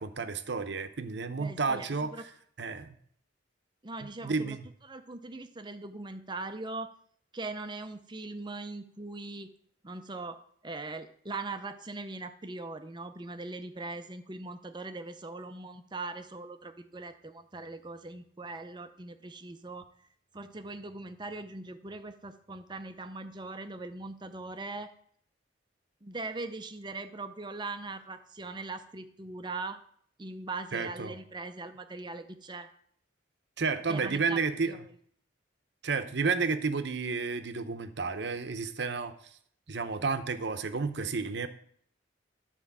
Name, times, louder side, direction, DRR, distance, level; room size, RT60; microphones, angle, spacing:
voice 1, 0.0-2.1 2.6-3.0 4.2-4.6 30.7-31.1 33.6-34.8 35.8-39.1 39.7-41.5, right 4 dB, 60° right, 10 dB, 0.8 m, -31 dB
voice 2, 1.4-2.2 3.8-4.6 4.9-6.9 7.3-9.5 9.8-10.4 10.6-19.9 20.3-24.9 26.0-29.8 30.2-32.7 33.9-34.4 34.6-34.8, right 3 dB, 25° right, 9 dB, 0.6 m, -40 dB
11.5 x 4.5 x 7.3 m, 0.62 s
head